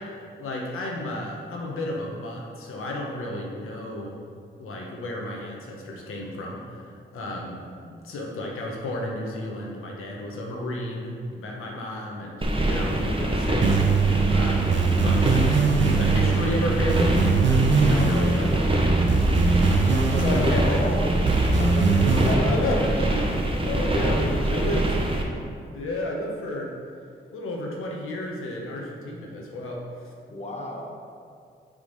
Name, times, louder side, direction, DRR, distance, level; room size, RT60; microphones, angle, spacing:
voice 1, 0.0-4.2 4.6-6.8 7.1-7.6 7.8-15.5 16.0-19.5 20.2-21.2 22.2-24.2 24.5-24.9 25.7-26.7 27.3-29.8, left 1 dB, 85° left, -1 dB, 1.0 m, -32 dB
sound 1, 12.4-25.2, right 1 dB, 25° right, 1.2 m, -24 dB
sound 2, 13.6-22.3, right 4 dB, 60° right, 0.7 m, -22 dB
voice 2, 19.6-21.1 21.5-22.9 23.9-24.9 30.3-30.9, equal, 30° left, -2 dB, 1.2 m, -32 dB
7.1 x 3.7 x 5.3 m, 2.3 s
supercardioid pair, 40°, 21 cm